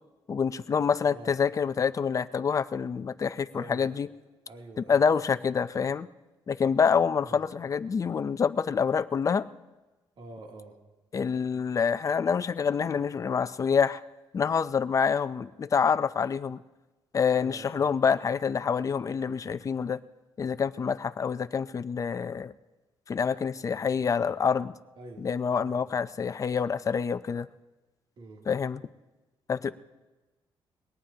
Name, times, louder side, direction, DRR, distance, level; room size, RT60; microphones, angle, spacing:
voice 1, 0.3-4.1 4.8-6.1 6.5-9.5 11.1-14.0 14.3-16.6 17.1-20.0 20.4-22.5 23.1-24.7 25.2-27.5 28.5-28.8 29.5-29.7, left 6 dB, 35° left, 13 dB, 0.5 m, -27 dB
voice 2, 1.1-1.4 3.5-3.9 4.5-5.0 7.2-7.4 10.2-10.8 17.4-18.0 25.0-25.3 25.6-25.9 28.2-28.5 29.6-29.7, right 2 dB, 60° right, 0 dB, 2.8 m, -46 dB
22.0 x 18.0 x 2.8 m, 1.1 s
cardioid pair, 110°, 10 cm